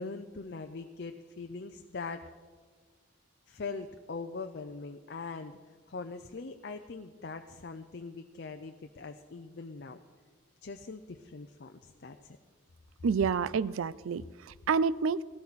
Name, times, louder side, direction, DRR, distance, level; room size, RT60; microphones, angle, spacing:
voice 1, 0.0-2.3 3.5-5.6 5.9-10.0 10.6-12.4, left 4 dB, 50° left, 6 dB, 0.5 m, -42 dB
voice 2, 13.0-15.2, right 5 dB, 75° right, 19 dB, 0.4 m, -29 dB
17.0 x 13.0 x 4.1 m, 1.5 s
head